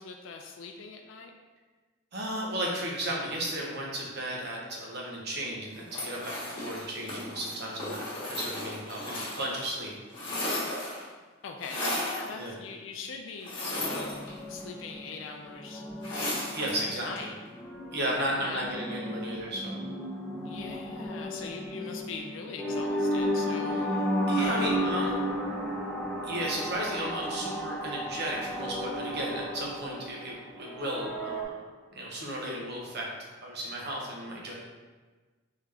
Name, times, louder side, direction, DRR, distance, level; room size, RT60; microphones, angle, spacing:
voice 1, 0.0-1.3 11.4-15.8 16.5-17.3 18.0-18.9 20.4-23.9 24.4-25.0, left 4 dB, 70° left, 3 dB, 0.3 m, -41 dB
voice 2, 2.1-9.9 12.3-12.6 16.5-17.3 17.9-19.8 24.3-25.1 26.2-31.6 31.9-33.1 33.4-34.5, right 1 dB, 55° right, -2 dB, 0.9 m, -34 dB
sound 1, 5.9-9.7 9.9-11.1 11.6-12.3 13.4-14.6 16.0-16.8, left 1 dB, 25° left, 1.2 m, -35 dB
sound 2, 13.6-31.4, equal, ahead, 0.6 m, -33 dB
3.6 x 3.4 x 3.3 m, 1.3 s
head